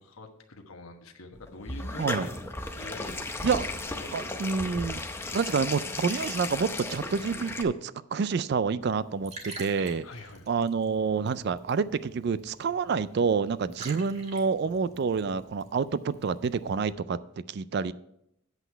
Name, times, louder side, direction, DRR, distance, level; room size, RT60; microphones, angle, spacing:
voice 1, 0.0-2.4 2.7-3.1 3.6-5.2 10.0-10.5, left 3 dB, 85° left, 5 dB, 1.1 m, -46 dB
sound 1, 1.3-7.6, left 2 dB, 10° left, 0.6 m, -35 dB
voice 2, 4.1-5.0 5.3-10.0 10.5-17.9, right 5 dB, 50° right, 17 dB, 0.3 m, -28 dB
Liquid, 8.8-16.9, right 3 dB, 30° right, 1.4 m, -48 dB
8.2 x 7.9 x 4.5 m, 0.78 s
head